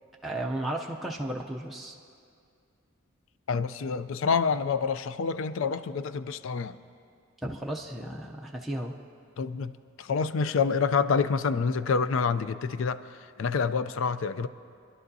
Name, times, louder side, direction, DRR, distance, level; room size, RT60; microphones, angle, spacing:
voice 1, 0.2-2.0 7.4-9.0, right 1 dB, ahead, -3 dB, 0.5 m, -34 dB
voice 2, 3.5-6.8 9.4-9.7 10.0-13.0 13.4-14.5, left 5 dB, 65° left, 13 dB, 0.4 m, -27 dB
26.0 x 11.0 x 2.7 m, 2.3 s
head